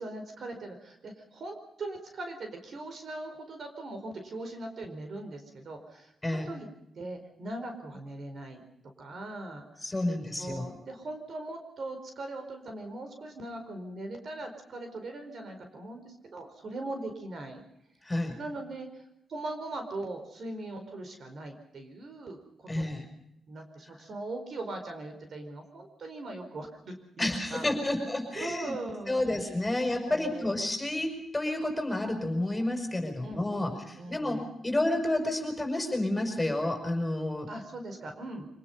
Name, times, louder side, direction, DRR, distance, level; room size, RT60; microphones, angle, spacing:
voice 1, 0.0-6.7 7.0-8.6 9.0-9.8 10.4-17.6 18.4-19.0 19.3-23.1 23.5-28.0 28.3-29.2 30.1-30.8 33.2-34.4 37.5-38.5, right 2 dB, 60° right, 5 dB, 4.5 m, -40 dB
voice 2, 9.8-10.6 18.0-18.4 22.7-23.0 27.2-28.7 29.1-37.5, left 1 dB, 15° left, 3 dB, 6.5 m, -30 dB
25.5 x 19.0 x 5.6 m, 0.82 s
cardioid pair, 95°, 0 cm